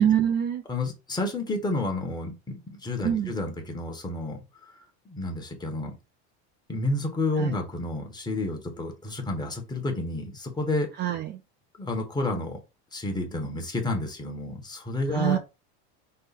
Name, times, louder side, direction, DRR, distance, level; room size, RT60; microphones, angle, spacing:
voice 1, 0.0-0.6 3.0-3.3 7.4-7.5 11.0-11.4 15.1-15.4, right 10 dB, 35° right, 0.4 m, -24 dB
voice 2, 0.7-4.4 5.0-5.9 6.7-10.9 11.8-12.6 12.9-15.4, left 2 dB, 15° left, 1.2 m, -30 dB
5.6 x 2.1 x 4.1 m
supercardioid pair, 135°, 33 cm